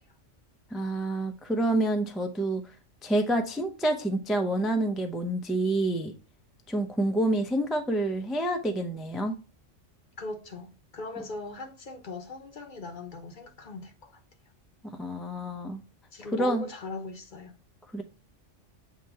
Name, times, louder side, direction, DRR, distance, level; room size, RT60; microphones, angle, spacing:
voice 1, 0.7-2.6 3.0-6.1 6.7-9.4 14.8-15.8 16.3-16.6 17.9-18.0, right 1 dB, ahead, 0.3 m, -28 dB
voice 2, 10.2-14.2 16.1-17.5, left 3 dB, 45° left, 0.9 m, -39 dB
7.4 x 2.9 x 4.6 m
omnidirectional pair, 1.2 m